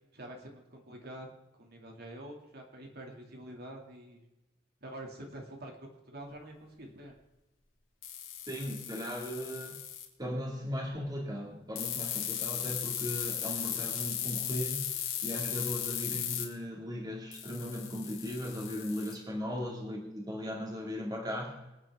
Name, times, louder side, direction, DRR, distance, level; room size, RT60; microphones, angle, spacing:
voice 1, 0.1-1.3 1.6-4.2 4.8-7.1 19.4-19.6, right 1 dB, 55° right, 1 dB, 2.5 m, -46 dB
sound 1, 8.0-10.0 11.8-16.4 17.3-19.1, left 10 dB, 85° left, 3.3 m, -36 dB
voice 2, 8.5-9.8 10.2-14.8 15.2-21.6, equal, 20° right, 0 dB, 2.3 m, -37 dB
25.5 x 9.5 x 3.7 m, 1.0 s
head